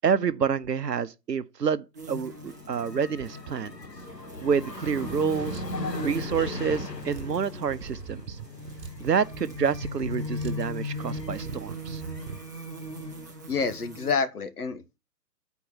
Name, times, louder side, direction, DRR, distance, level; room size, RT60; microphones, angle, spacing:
voice 1, 0.0-3.7 4.4-5.6 6.0-8.4 9.0-12.0, right 6 dB, 80° right, 0.8 m, -28 dB
sound 1, 1.9-14.1, left 2 dB, 10° right, 0.5 m, -39 dB
sound 2, 2.3-13.3, left 2 dB, 90° left, 1.3 m, -41 dB
sound 3, 5.1-12.4, right 5 dB, 35° right, 1.2 m, -42 dB
voice 2, 13.5-15.0, left 5 dB, 65° left, 1.4 m, -28 dB
8.2 x 4.6 x 7.2 m
figure-of-eight pair, 135°, 48 cm